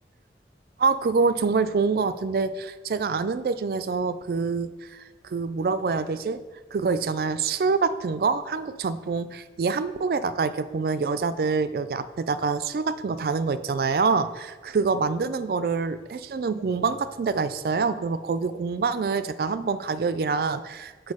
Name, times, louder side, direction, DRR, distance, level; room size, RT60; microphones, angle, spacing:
voice 1, 0.8-6.4 6.7-21.1, right 4 dB, 55° right, 12 dB, 0.3 m, -26 dB
6.3 x 4.5 x 4.8 m, 1.3 s
head